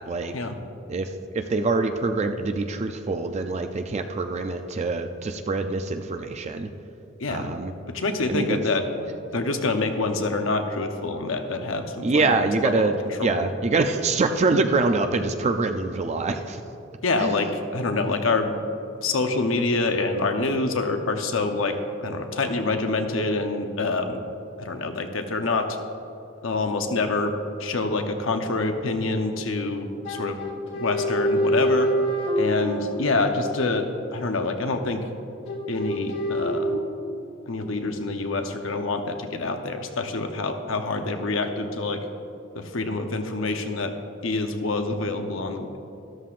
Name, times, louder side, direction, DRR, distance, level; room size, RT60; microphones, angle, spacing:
voice 1, 1.3-6.7 7.3-7.7 8.3-8.6 12.0-16.6 17.2-17.3, right 3 dB, 35° right, 6 dB, 0.4 m, -25 dB
voice 2, 7.9-8.8 9.3-13.5 17.0-18.5 19.0-24.2 24.6-25.7 26.4-27.3 27.6-30.4 30.8-31.9 32.4-35.0 35.7-36.7 37.5-42.0 42.5-43.9 44.2-45.8, left 3 dB, 75° left, 6 dB, 0.9 m, -26 dB
sound 1, 30.0-32.9 35.5-36.8, equal, 60° left, 2.1 m, -25 dB
13.0 x 12.5 x 2.5 m, 2.8 s
head